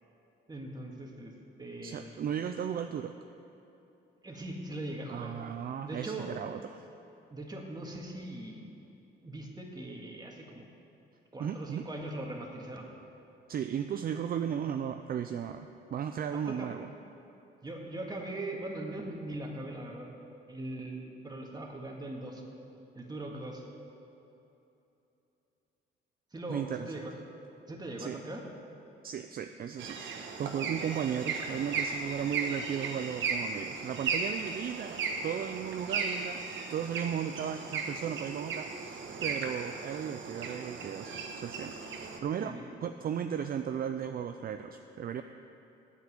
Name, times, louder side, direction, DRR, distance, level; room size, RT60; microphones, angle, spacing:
voice 1, 0.5-1.3 1.6-2.1 4.2-6.5 7.3-8.7 9.2-10.7 11.3-12.9 16.3-16.7 17.6-20.1 20.5-22.4 23.0-23.6 26.3-27.1 27.7-28.4 42.4-42.7, right 1 dB, 20° right, 0 dB, 1.8 m, -40 dB
voice 2, 1.8-3.1 5.1-6.9 11.4-11.9 13.5-16.9 26.5-27.1 28.0-28.2 29.0-36.4 36.7-42.5 42.8-45.2, right 8 dB, 50° right, 7 dB, 0.5 m, -35 dB
sound 1, 29.8-42.2, right 5 dB, 70° right, 1.2 m, -36 dB
9.4 x 7.4 x 8.4 m, 2.9 s
cardioid pair, 90°, 20 cm